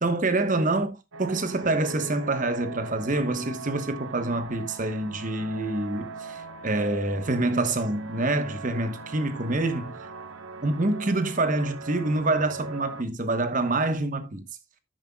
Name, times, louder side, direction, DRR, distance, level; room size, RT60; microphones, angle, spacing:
voice 1, 0.0-10.0 10.6-14.4, right 2 dB, 35° right, 1.0 m, -26 dB
sound 1, 1.1-13.0, right 4 dB, 70° right, 1.0 m, -40 dB
10.0 x 9.3 x 2.3 m
head